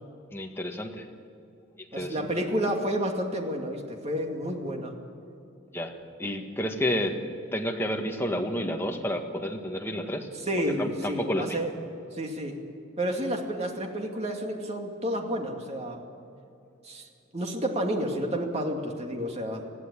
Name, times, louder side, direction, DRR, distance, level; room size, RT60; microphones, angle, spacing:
voice 1, 0.3-1.1 1.9-2.3 5.7-7.2 7.5-10.3 10.8-11.6, equal, 10° left, 2 dB, 1.7 m, -30 dB
voice 2, 1.9-4.9 10.4-11.7 12.1-12.6 13.0-16.0 16.8-17.1 17.3-19.6, equal, 30° right, 2 dB, 2.4 m, -30 dB
20.5 x 14.5 x 9.9 m, 2.7 s
head